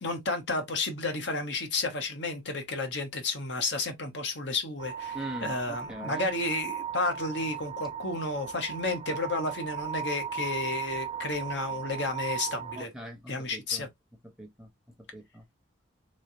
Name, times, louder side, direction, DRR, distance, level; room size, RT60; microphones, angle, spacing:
voice 1, 0.0-12.9 13.3-13.9, left 3 dB, 65° left, 1.1 m, -32 dB
sound 1, 4.8-12.8, right 8 dB, 30° right, 0.3 m, -37 dB
voice 2, 5.1-6.3 12.8-13.8 14.4-14.7 15.1-15.4, equal, 5° right, 0.9 m, -42 dB
3.7 x 3.2 x 2.7 m
head